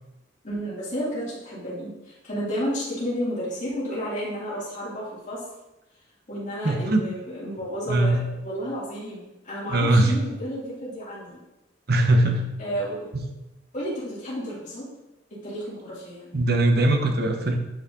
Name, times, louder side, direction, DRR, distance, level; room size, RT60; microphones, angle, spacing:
voice 1, 0.4-5.4 6.3-11.4 12.6-13.0 13.7-14.8 15.4-16.3, equal, 40° left, -9 dB, 3.0 m, -31 dB
voice 2, 6.6-7.0 7.9-8.2 9.7-10.1 11.9-12.5 16.3-17.6, right 1 dB, 55° right, 4 dB, 1.0 m, -20 dB
9.2 x 5.0 x 3.9 m, 0.98 s
head